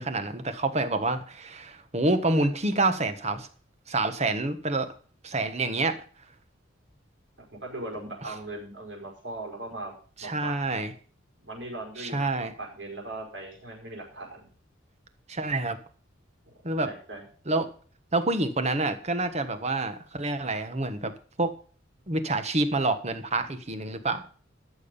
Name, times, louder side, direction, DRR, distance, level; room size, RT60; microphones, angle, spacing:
voice 1, 0.0-3.5 3.9-4.9 5.2-6.0 8.2-8.3 10.2-10.9 12.0-12.5 15.3-15.8 16.6-16.9 17.5-17.7 18.1-21.1 21.4-21.5 22.1-24.2, right 2 dB, 35° right, 10 dB, 1.3 m, -27 dB
voice 2, 7.6-9.9 10.2-10.5 11.4-14.5 16.9-17.2, right 2 dB, 65° right, 0 dB, 5.2 m, -39 dB
13.0 x 7.1 x 5.4 m, 0.41 s
head